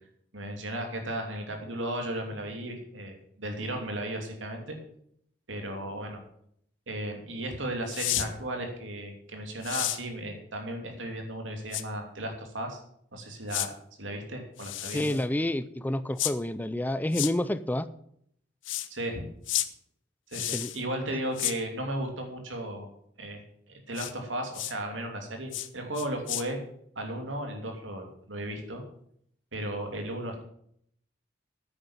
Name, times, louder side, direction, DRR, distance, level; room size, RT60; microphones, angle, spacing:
voice 1, 0.3-4.8 5.5-6.2 6.9-12.8 13.1-13.7 14.0-15.2 18.9-19.2 20.3-22.9 23.2-23.4 23.7-26.6 26.9-28.8 29.5-30.4, right 1 dB, 80° right, 3 dB, 2.8 m, -35 dB
sound 1, 7.9-8.3 9.6-10.0 11.7-11.8 13.5-13.7 14.6-15.2 16.2-16.3 17.1-17.3 18.6-18.9 19.5-19.7 20.3-20.8 21.4-21.6 23.9-24.1 24.5-24.7 25.5-25.7 26.0-26.4, left 14 dB, 85° left, 0.8 m, -31 dB
voice 2, 14.9-17.9 20.5-20.7, left 1 dB, 10° left, 14 dB, 0.4 m, -29 dB
9.6 x 9.1 x 7.4 m, 0.69 s
head